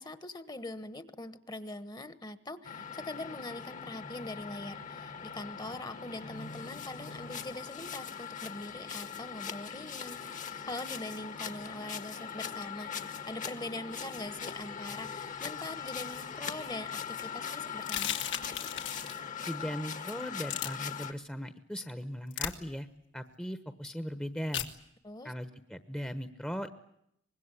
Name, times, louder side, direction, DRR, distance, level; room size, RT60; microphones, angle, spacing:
voice 1, 0.0-18.2 25.0-25.3, left 2 dB, 25° left, 13 dB, 1.3 m, -42 dB
sound 1, 2.6-21.1, left 7 dB, 45° left, 1.6 m, -41 dB
sound 2, 17.8-19.2 20.5-20.7 22.3-22.5 24.5-24.7, left 10 dB, 80° left, 2.3 m, -35 dB
voice 2, 19.4-22.9 23.1-24.7 25.2-26.7, equal, 5° left, 10 dB, 1.1 m, -38 dB
24.5 x 21.0 x 9.8 m, 0.76 s
head